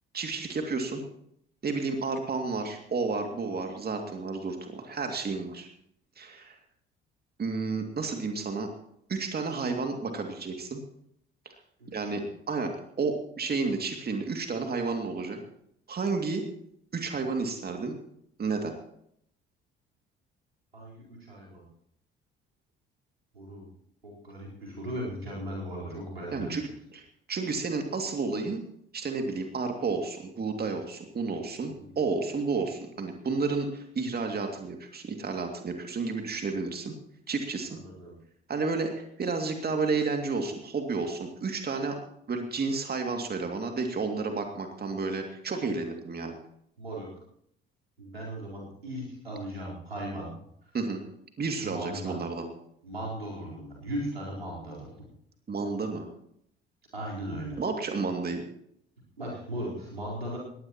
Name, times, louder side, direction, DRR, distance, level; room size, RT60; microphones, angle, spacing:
voice 1, 0.1-1.0 1.6-5.7 6.2-6.6 7.4-8.7 9.1-10.8 11.9-12.7 13.0-15.4 15.9-16.4 16.9-17.9 18.4-18.7 26.3-28.6 28.9-37.0 37.3-37.8 38.5-42.0 42.3-46.3 50.7-51.0 51.4-52.4 55.5-56.1 57.6-58.4, right 4 dB, 35° right, 4 dB, 2.5 m, -31 dB
voice 2, 11.8-12.1 20.7-21.6 23.3-23.6 24.0-26.6 31.8-31.9 37.8-38.1 46.8-47.1 48.0-50.4 51.6-52.2 52.8-55.1 56.9-57.6 59.2-60.4, right 1 dB, 90° right, -5 dB, 4.3 m, -37 dB
20.0 x 15.5 x 3.0 m, 0.70 s
figure-of-eight pair, 50°, 29 cm